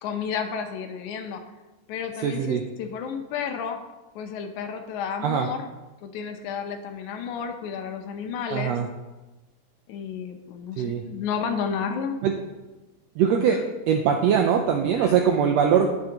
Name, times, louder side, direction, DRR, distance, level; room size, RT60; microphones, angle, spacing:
voice 1, 0.0-1.4 1.9-3.8 4.2-5.7 6.0-8.8 9.9-12.2 13.5-13.6 15.0-15.1, left 6 dB, 75° left, 6 dB, 2.1 m, -31 dB
voice 2, 2.2-2.6 5.2-5.5 8.5-8.9 10.8-11.0 12.2-12.4 13.2-15.9, right 7 dB, 85° right, 4 dB, 1.5 m, -22 dB
10.5 x 7.7 x 2.9 m, 1.1 s
omnidirectional pair, 3.6 m